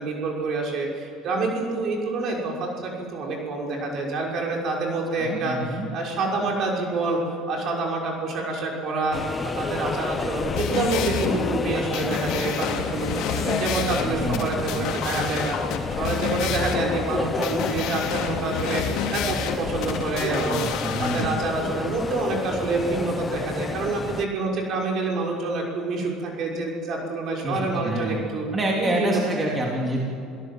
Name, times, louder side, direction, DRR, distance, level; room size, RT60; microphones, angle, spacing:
voice 1, 0.0-7.2 7.5-9.2 9.4-15.6 16.0-20.6 21.0-28.5 28.8-29.2, right 3 dB, 55° right, -1 dB, 6.1 m, -27 dB
voice 2, 5.2-5.9 14.0-14.9 20.3-21.4 27.4-28.2 28.5-30.0, right 1 dB, 20° right, -2 dB, 3.4 m, -28 dB
sound 1, 9.1-24.3, left 4 dB, 25° left, 1.0 m, -31 dB
sound 2, 10.3-21.3, left 8 dB, 70° left, 2.7 m, -30 dB
28.5 x 17.0 x 7.8 m, 2.4 s
cardioid pair, 120°, 0 cm